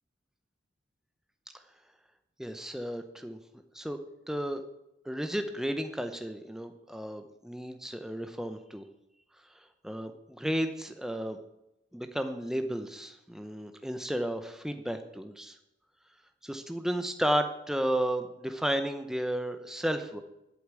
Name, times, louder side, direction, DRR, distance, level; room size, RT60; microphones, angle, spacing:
voice 1, 2.4-3.4 3.7-4.0 4.3-4.6 5.0-8.8 9.5-11.4 11.9-15.6 16.4-20.2, equal, 5° right, 7 dB, 0.7 m, -33 dB
8.4 x 8.2 x 8.4 m, 0.88 s
head